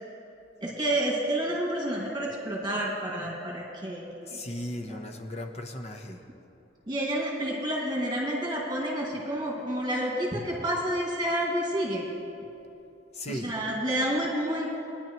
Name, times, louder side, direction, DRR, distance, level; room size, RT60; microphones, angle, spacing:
voice 1, 0.6-4.4 4.9-5.0 6.9-12.0 13.3-14.8, right 1 dB, 25° right, -4 dB, 2.0 m, -29 dB
voice 2, 4.3-6.2 13.1-13.5, left 1 dB, 35° left, 5 dB, 0.9 m, -36 dB
21.5 x 10.0 x 3.1 m, 2.9 s
head